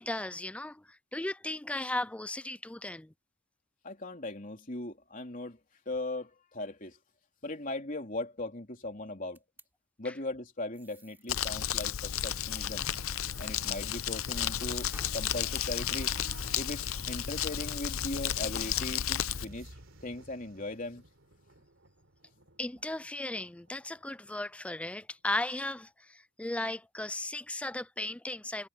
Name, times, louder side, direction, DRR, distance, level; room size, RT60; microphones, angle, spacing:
voice 1, 0.0-3.1 10.0-10.1 22.6-28.7, left 1 dB, 5° left, 0.3 m, -36 dB
voice 2, 3.8-5.6 5.9-7.0 7.4-9.4 10.0-12.9 13.4-19.7 20.0-21.0, left 2 dB, 40° left, 3.5 m, -39 dB
sound 1, 9.3-9.7 10.7-11.3 14.0-14.4 14.9-17.1, right 1 dB, 10° right, 4.1 m, -58 dB
Crumpling crinkling, 11.3-19.4, left 10 dB, 80° left, 0.7 m, -33 dB
sound 2, 11.5-24.9 25.2-25.3, right 3 dB, 65° right, 3.7 m, -54 dB
head